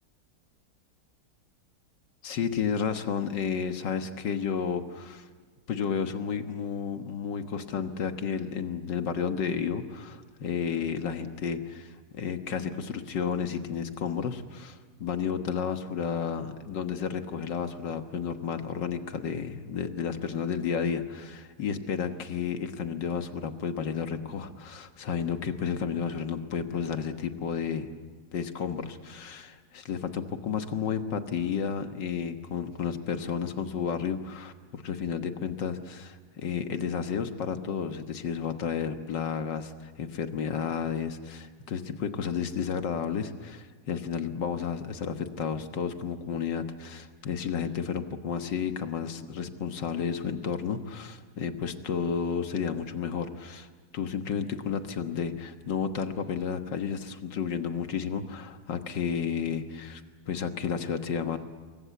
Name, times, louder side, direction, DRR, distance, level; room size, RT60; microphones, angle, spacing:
voice 1, 2.2-5.3 5.7-27.9 28.3-53.7 53.9-60.0 60.3-61.4, left 7 dB, 75° left, 7 dB, 2.0 m, -32 dB
28.0 x 22.0 x 8.3 m, 1.5 s
omnidirectional pair, 2.0 m